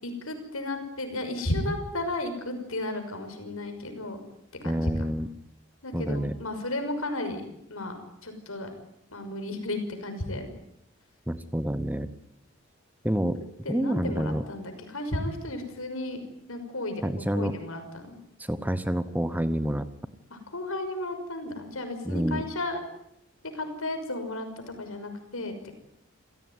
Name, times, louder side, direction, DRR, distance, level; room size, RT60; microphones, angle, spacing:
voice 1, 0.0-4.2 4.6-4.9 5.8-7.4 7.7-7.9 8.2-8.7 9.1-10.5 13.6-16.2 16.5-17.0 17.3-18.2 20.3-22.8 23.5-25.7, left 1 dB, 75° left, 7 dB, 6.1 m, -33 dB
voice 2, 4.6-5.3 5.9-6.3 11.3-12.1 13.0-13.4 13.7-14.4 17.0-17.5 18.4-19.9 22.0-22.4, equal, 10° right, 12 dB, 1.0 m, -28 dB
28.5 x 17.0 x 9.7 m, 0.78 s
head